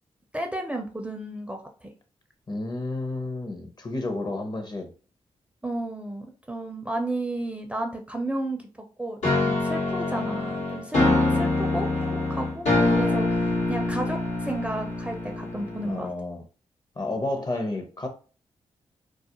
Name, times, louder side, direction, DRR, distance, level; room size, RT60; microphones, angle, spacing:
voice 1, 0.3-1.9 5.6-8.6 9.0-11.0 11.3-16.1, right 1 dB, 10° right, 0.4 m, -32 dB
voice 2, 2.5-4.9 15.8-16.5 17.0-18.1, left 2 dB, 35° left, 0.7 m, -31 dB
sound 1, 9.2-16.1, left 2 dB, 80° left, 1.1 m, -25 dB
2.3 x 2.1 x 2.9 m
cardioid pair, 50°, 12 cm